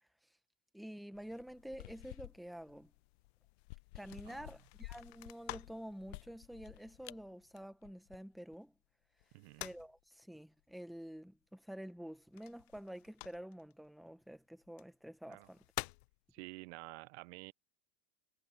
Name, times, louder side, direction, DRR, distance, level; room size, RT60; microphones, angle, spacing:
voice 1, 0.7-2.9 3.9-8.7 9.6-15.6, equal, ahead, 0.7 m, -49 dB
sound 1, 1.1-8.6 9.2-10.0 12.4-13.7 14.7-14.8 15.3-16.1, left 24 dB, 60° left, 0.4 m, -49 dB
voice 2, 9.3-9.7 15.3-15.5 16.3-17.5, right 24 dB, 60° right, 0.5 m, -50 dB
supercardioid pair, 165°, 38 cm